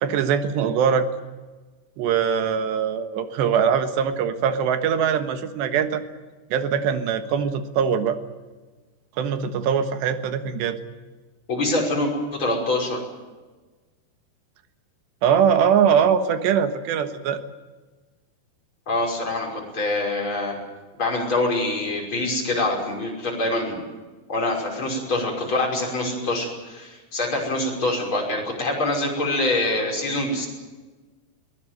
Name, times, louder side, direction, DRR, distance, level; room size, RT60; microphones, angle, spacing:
voice 1, 0.0-1.1 2.0-6.0 6.5-8.2 9.2-10.8 15.2-17.4, right 7 dB, 90° right, 8 dB, 3.6 m, -22 dB
voice 2, 11.5-13.0 18.9-20.5 21.0-23.8 24.3-30.5, left 2 dB, 30° left, 0 dB, 6.4 m, -25 dB
22.0 x 18.5 x 9.3 m, 1.3 s
omnidirectional pair, 4.9 m